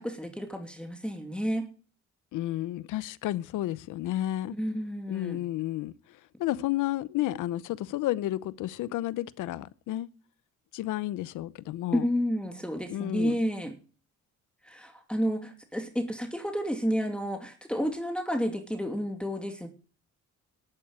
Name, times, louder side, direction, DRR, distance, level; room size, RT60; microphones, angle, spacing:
voice 1, 0.0-1.6 4.5-5.4 11.9-13.7 14.6-19.7, equal, 5° left, 2.7 m, -31 dB
voice 2, 2.3-4.6 5.1-10.1 10.7-12.1 12.9-13.4, left 14 dB, 85° left, 0.8 m, -32 dB
12.5 x 9.1 x 8.9 m
cardioid pair, 90°, 30 cm